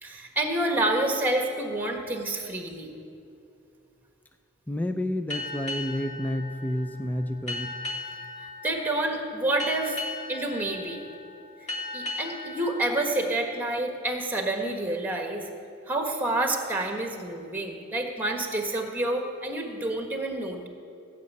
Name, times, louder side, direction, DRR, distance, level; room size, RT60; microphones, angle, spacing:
voice 1, 0.0-2.9 8.6-10.0 10.3-11.0 11.9-15.4 15.9-20.7, right 1 dB, 10° right, 2 dB, 1.5 m, -28 dB
voice 2, 4.7-7.7, left 1 dB, 10° left, 7 dB, 0.4 m, -30 dB
sound 1, 5.3-14.5, left 2 dB, 35° left, 1.9 m, -38 dB
16.0 x 6.5 x 8.5 m, 2.6 s
head